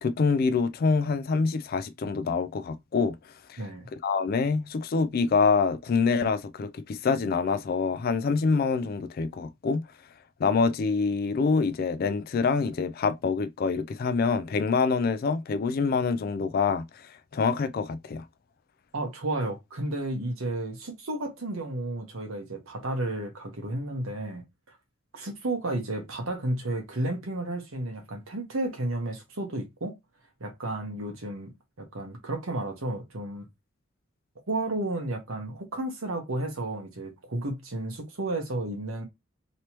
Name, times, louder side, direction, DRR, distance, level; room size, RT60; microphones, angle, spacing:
voice 1, 0.0-3.2 3.5-3.6 4.0-9.8 10.4-17.0 17.3-18.2, left 4 dB, 45° left, 0.3 m, -26 dB
voice 2, 3.6-3.9 18.9-24.8 25.1-30.0 30.4-31.5 31.8-33.5 34.5-39.0, right 2 dB, 90° right, 1.1 m, -32 dB
3.2 x 2.9 x 2.9 m
head